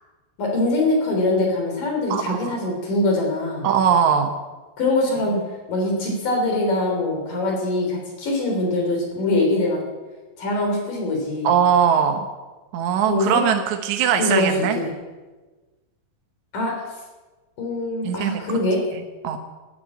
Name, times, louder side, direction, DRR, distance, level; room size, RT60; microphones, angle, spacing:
voice 1, 0.4-3.7 4.8-5.4 5.7-9.8 10.4-11.5 13.1-13.5 14.2-14.9 16.5-16.7 17.6-18.8, left 2 dB, 65° left, 1 dB, 4.9 m, -23 dB
voice 2, 2.1-2.5 3.6-4.4 11.4-12.3 12.7-14.8 18.0-18.4 19.2-19.4, right 8 dB, 65° right, 5 dB, 2.0 m, -20 dB
13.0 x 12.0 x 8.4 m, 1.2 s
omnidirectional pair, 4.3 m